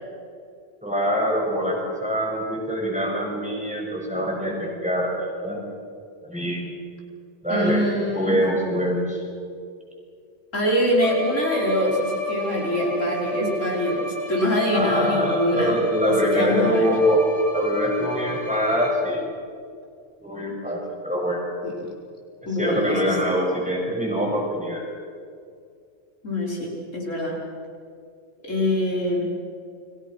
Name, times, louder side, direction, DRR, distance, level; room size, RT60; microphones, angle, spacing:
voice 1, 0.8-5.6 6.2-6.7 7.4-7.8 8.1-9.2 14.7-17.2 17.5-19.3 20.2-21.5 22.4-24.8, equal, 5° right, -2 dB, 6.7 m, -24 dB
voice 2, 7.5-8.4 10.5-16.9 21.6-21.9 22.5-23.2 26.2-27.4 28.4-29.3, left 1 dB, 70° left, -2 dB, 5.1 m, -24 dB
Bowed string instrument, 11.0-19.3, left 2 dB, 55° left, 6.5 m, -30 dB
30.0 x 22.5 x 6.3 m, 2.3 s
omnidirectional pair, 1.3 m